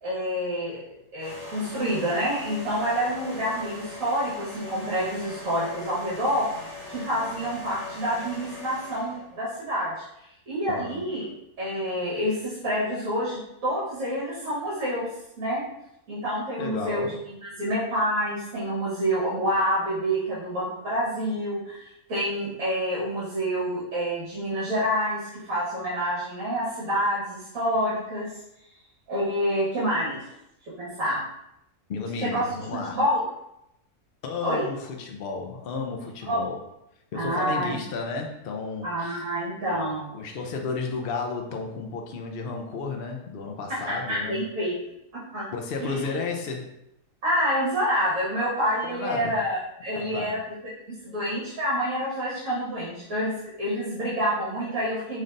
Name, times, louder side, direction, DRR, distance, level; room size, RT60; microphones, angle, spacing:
voice 1, 0.0-0.8 1.1-6.5 6.9-10.0 10.5-11.3 11.6-15.1 15.4-15.6 16.1-17.0 17.4-28.3 29.1-30.2 30.8-31.2 32.2-32.4 32.9-33.2 34.4-34.6 36.2-36.4 37.1-37.8 38.8-40.1 43.9-44.7 45.3-45.4 45.8-46.1 47.2-50.5 51.0-55.2, equal, 60° right, -9 dB, 1.7 m, -27 dB
sound 1, 1.2-9.3, left 2 dB, 25° right, 1.4 m, -40 dB
voice 2, 10.7-11.1 16.6-17.2 31.9-33.0 34.2-36.6 37.1-39.9 40.1-44.4 45.5-46.7 48.8-49.4 49.9-50.4, left 4 dB, 70° left, 2 dB, 0.5 m, -33 dB
5.3 x 3.2 x 2.5 m, 0.82 s
omnidirectional pair, 1.6 m